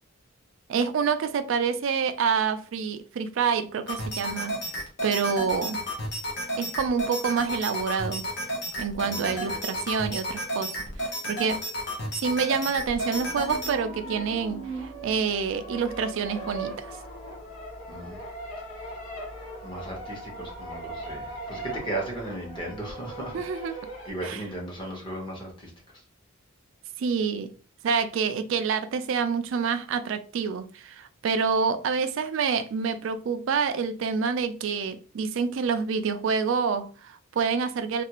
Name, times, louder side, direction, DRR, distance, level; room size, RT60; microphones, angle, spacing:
voice 1, 0.7-4.6 5.0-5.8 6.6-8.2 8.8-11.6 12.2-16.9 23.3-23.7 24.2-24.4 27.0-27.5 27.8-38.0, right 6 dB, 65° right, 0.3 m, -27 dB
sound 1, 3.9-13.7, equal, 55° left, 0.7 m, -32 dB
voice 2, 9.0-9.6 17.9-18.2 19.6-23.4 23.6-23.8 24.1-25.7, right 1 dB, 25° left, 0.9 m, -36 dB
sound 2, 13.1-24.1, right 2 dB, 75° left, 1.3 m, -39 dB
2.5 x 2.3 x 2.9 m
head